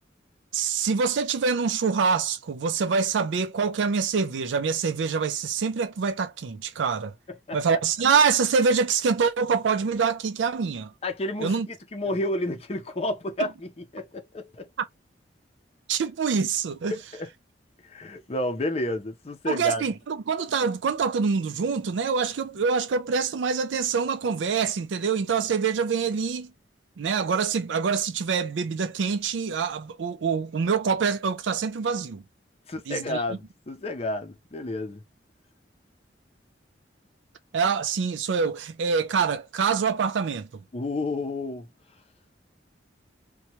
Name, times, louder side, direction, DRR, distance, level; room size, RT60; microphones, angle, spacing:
voice 1, 0.5-7.1 7.5-10.9 11.4-11.7 15.9-17.0 19.5-26.5 27.0-32.2 32.9-33.2 37.5-40.5, right 5 dB, 85° right, 0.4 m, -25 dB
voice 2, 11.0-14.7 16.9-17.3 17.8-19.8 32.7-35.0 40.7-41.7, left 2 dB, 35° left, 0.6 m, -31 dB
2.8 x 2.2 x 2.9 m
head